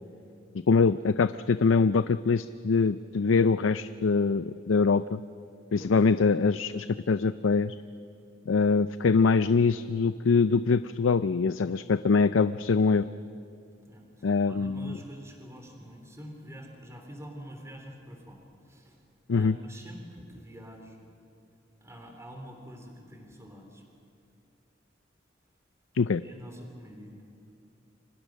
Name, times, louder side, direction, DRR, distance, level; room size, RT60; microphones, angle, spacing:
voice 1, 0.7-5.2 5.7-7.8 8.5-13.1 14.2-15.0 19.3-19.6 25.9-26.2, left 4 dB, 85° left, 13 dB, 0.5 m, -24 dB
voice 2, 13.9-19.0 19.3-21.0 21.8-23.8 26.2-27.3, equal, 15° right, 3 dB, 3.2 m, -46 dB
29.0 x 25.0 x 6.4 m, 2.6 s
head